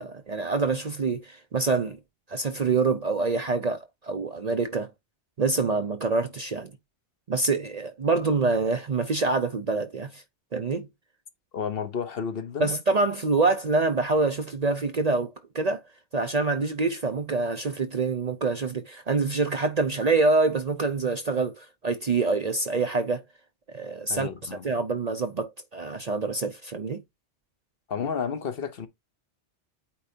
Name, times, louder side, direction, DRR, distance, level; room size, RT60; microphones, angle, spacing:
voice 1, 0.0-2.0 2.3-4.9 5.4-6.7 7.3-10.2 10.5-10.9 12.6-15.8 16.1-23.2 23.7-27.0, right 3 dB, 45° right, 0.6 m, -26 dB
voice 2, 11.5-12.7 24.1-24.6 27.9-28.9, left 6 dB, 60° left, 1.0 m, -31 dB
8.6 x 4.5 x 2.7 m
omnidirectional pair, 1.2 m